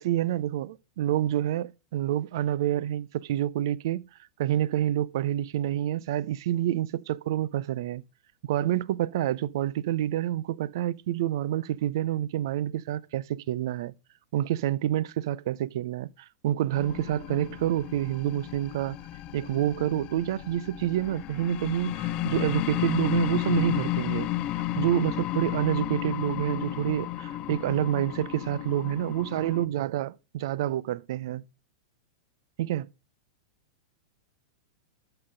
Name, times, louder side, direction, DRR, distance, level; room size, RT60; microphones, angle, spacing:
voice 1, 0.0-4.0 4.4-8.0 8.4-13.9 14.3-19.0 19.3-24.3 24.8-31.4 32.6-32.9, right 12 dB, 60° right, 0.6 m, -28 dB
sound 1, 16.7-29.7, left 14 dB, 40° left, 0.8 m, -33 dB
12.5 x 8.0 x 5.1 m
hypercardioid pair, 100°, 2 cm